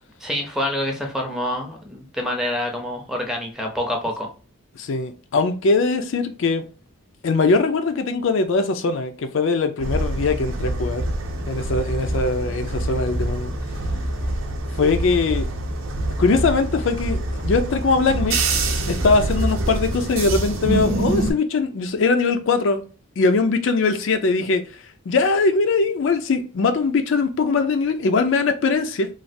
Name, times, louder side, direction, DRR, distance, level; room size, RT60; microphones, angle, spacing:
voice 1, 0.2-4.3, left 1 dB, 5° right, 0.5 m, -26 dB
voice 2, 4.8-6.6 7.2-11.0 11.5-13.5 14.8-15.5 16.2-18.4 18.9-22.8 23.2-24.6 25.1-29.1, left 4 dB, 65° left, 0.4 m, -21 dB
sound 1, 9.8-21.3, right 1 dB, 75° right, 0.6 m, -25 dB
3.2 x 2.3 x 2.6 m
head